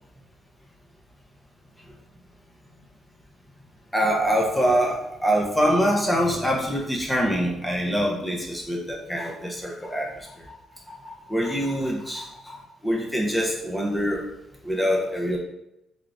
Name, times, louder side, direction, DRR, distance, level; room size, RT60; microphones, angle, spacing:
voice 1, 3.9-10.6 10.9-14.2 14.6-15.4, equal, 10° left, -1 dB, 0.7 m, -25 dB
3.5 x 3.5 x 2.5 m, 0.84 s
cardioid pair, 90°, 0 cm